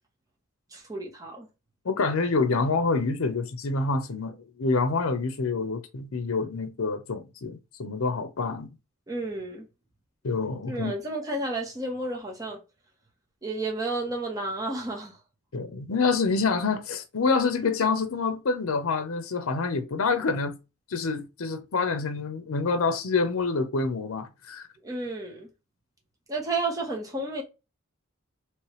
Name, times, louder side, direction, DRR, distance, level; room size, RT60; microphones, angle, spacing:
voice 1, 0.7-1.5 9.1-9.6 10.7-12.6 13.4-15.2 24.8-25.5 26.3-27.4, right 2 dB, 15° right, 1.0 m, -31 dB
voice 2, 1.8-8.7 10.2-10.9 15.5-20.6 20.9-24.6, left 4 dB, 75° left, 0.6 m, -27 dB
3.2 x 3.1 x 3.0 m
head